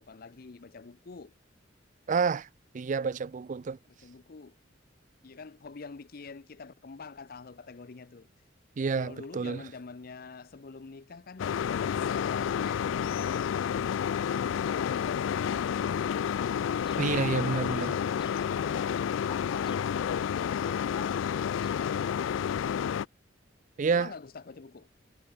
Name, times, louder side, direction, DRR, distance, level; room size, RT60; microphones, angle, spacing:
voice 1, 0.0-1.3 3.9-4.6 5.2-8.3 8.9-11.6 11.9-16.2 17.0-19.3 19.5-19.9 23.9-24.9, left 4 dB, 50° left, 0.6 m, -46 dB
voice 2, 2.1-2.5 2.7-3.8 8.8-9.6 17.0-17.9 23.8-24.1, right 5 dB, 40° right, 0.4 m, -29 dB
sound 1, 11.4-23.1, left 8 dB, 85° left, 0.3 m, -30 dB
sound 2, 16.0-22.3, left 3 dB, 25° left, 3.8 m, -51 dB
head